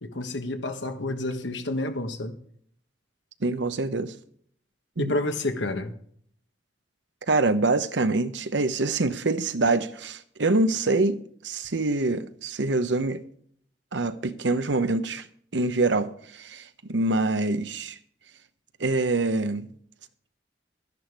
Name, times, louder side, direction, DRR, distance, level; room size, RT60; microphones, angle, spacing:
voice 1, 0.0-2.3 5.0-5.9, left 2 dB, 85° left, 1.4 m, -29 dB
voice 2, 3.4-4.1 5.0-5.1 7.3-11.2 11.4-13.2 13.9-15.3 15.5-18.0 18.8-19.7, right 2 dB, 85° right, 0.9 m, -25 dB
13.0 x 10.5 x 4.7 m
head